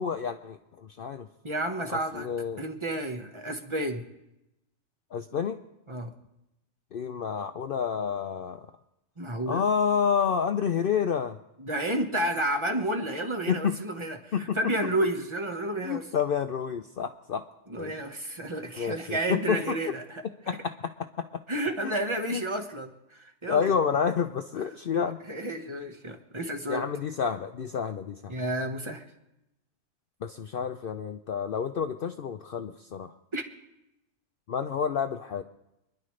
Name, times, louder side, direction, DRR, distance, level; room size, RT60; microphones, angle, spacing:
voice 1, 0.0-1.3 1.9-2.6 5.1-5.6 6.9-8.7 9.5-11.4 13.5-13.8 14.3-14.6 15.8-17.4 17.8-17.9 18.8-19.8 20.5-20.9 21.2-21.3 21.8-22.0 22.3-22.4 23.5-25.2 26.7-28.3 30.2-33.1 34.5-35.4, left 7 dB, 55° left, 6 dB, 0.7 m, -29 dB
voice 2, 1.4-2.3 2.6-4.0 5.9-6.1 9.2-9.6 11.6-16.0 17.7-20.2 21.5-23.7 25.3-26.8 28.3-29.0 33.3-33.4, right 1 dB, 25° right, 5 dB, 1.3 m, -31 dB
27.0 x 11.0 x 3.2 m, 0.89 s
omnidirectional pair, 1.3 m